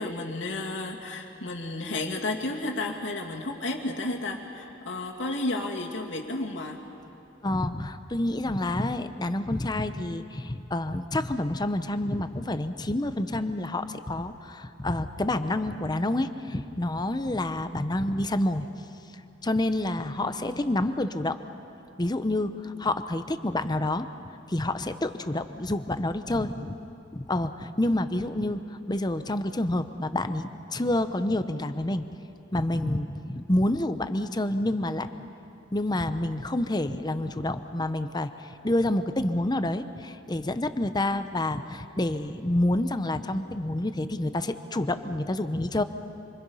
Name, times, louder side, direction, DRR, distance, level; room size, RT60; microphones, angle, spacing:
voice 1, 0.0-6.8 20.2-20.9, left 2 dB, 75° left, 0 dB, 2.5 m, -32 dB
voice 2, 7.4-18.7 19.4-21.4 22.0-24.1 24.5-26.8 27.1-32.1 32.5-35.1 35.7-38.3 38.6-45.8, left 1 dB, 20° left, 10 dB, 0.8 m, -28 dB
27.0 x 25.5 x 5.6 m, 2.7 s
head